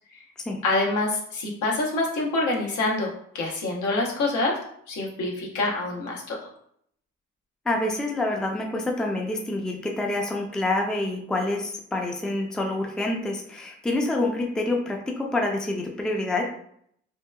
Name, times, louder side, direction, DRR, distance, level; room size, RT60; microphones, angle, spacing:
voice 1, 0.6-4.6 4.9-6.4, left 2 dB, 80° left, -1 dB, 0.8 m, -26 dB
voice 2, 7.7-16.4, left 2 dB, ahead, 1 dB, 0.3 m, -27 dB
2.8 x 2.1 x 2.2 m, 0.67 s
cardioid pair, 90°, 30 cm